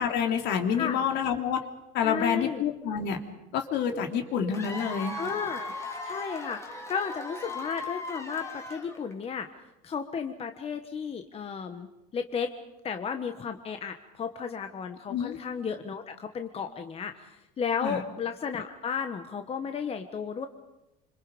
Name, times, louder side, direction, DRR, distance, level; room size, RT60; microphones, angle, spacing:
voice 1, 0.0-1.6 1.9-3.2 3.5-5.2 15.1-15.4 17.8-18.0, left 7 dB, 60° left, 4 dB, 3.2 m, -28 dB
voice 2, 2.0-2.6 5.2-5.7 6.0-9.5 9.8-11.9 12.1-12.5 12.8-20.5, left 6 dB, 30° left, 7 dB, 1.4 m, -34 dB
Cheering / Applause / Crowd, 4.5-9.2, left 2 dB, 15° left, 3.4 m, -38 dB
26.5 x 26.0 x 5.3 m, 0.93 s
cardioid pair, 125°, 20 cm